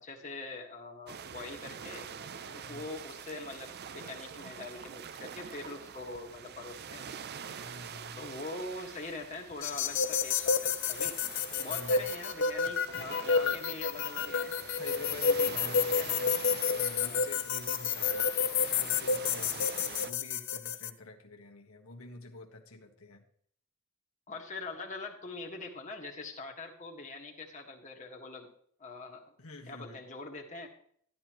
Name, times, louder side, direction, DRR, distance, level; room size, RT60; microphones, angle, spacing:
voice 1, 0.0-2.1 2.5-7.1 8.2-11.2 11.6-14.5 17.0-17.2 24.3-28.5 28.8-29.3 29.7-30.7, left 3 dB, 35° left, 0 dB, 1.7 m, -43 dB
sound 1, 1.1-20.1, right 7 dB, 50° right, 0.5 m, -45 dB
voice 2, 2.5-2.9 7.4-8.3 11.5-12.1 13.4-13.6 14.6-18.3 18.7-23.2 29.4-30.0, left 2 dB, 85° left, 1 dB, 1.6 m, -48 dB
sound 2, 9.6-20.9, left 5 dB, 60° left, 0.7 m, -30 dB
12.0 x 12.0 x 3.1 m, 0.62 s
head